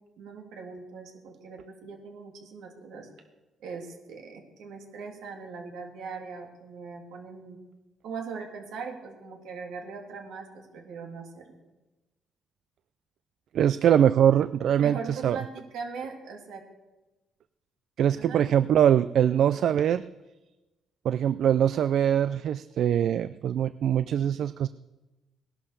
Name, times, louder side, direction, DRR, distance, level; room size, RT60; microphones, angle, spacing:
voice 1, 0.2-3.1 3.6-7.6 8.0-11.6 14.8-16.6 18.2-18.4, right 5 dB, 85° right, 2 dB, 3.2 m, -40 dB
voice 2, 13.5-15.4 18.0-20.1 21.0-24.7, right 9 dB, 70° right, 14 dB, 0.4 m, -23 dB
18.5 x 11.5 x 6.8 m, 1.1 s
cardioid pair, 90°, 0 cm